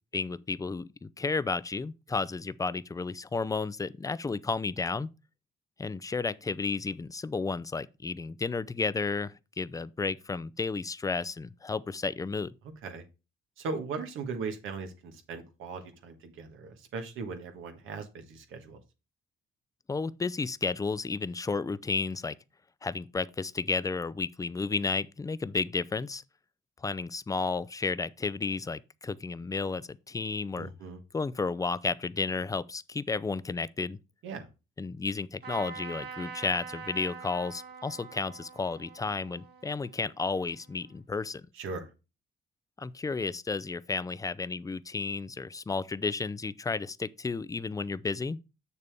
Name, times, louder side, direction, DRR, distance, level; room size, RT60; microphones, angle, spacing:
voice 1, 0.1-5.1 5.8-12.5 19.9-22.4 22.8-26.2 26.8-30.7 31.1-34.0 34.8-41.4 42.8-48.4, left 4 dB, 15° left, 0.4 m, -32 dB
voice 2, 13.6-18.8 30.5-31.0 34.2-34.5 41.6-41.9, right 4 dB, 85° right, 1.5 m, -38 dB
Trumpet, 35.4-40.9, right 6 dB, 55° right, 2.8 m, -45 dB
6.8 x 6.8 x 3.5 m
cardioid pair, 90°, 20 cm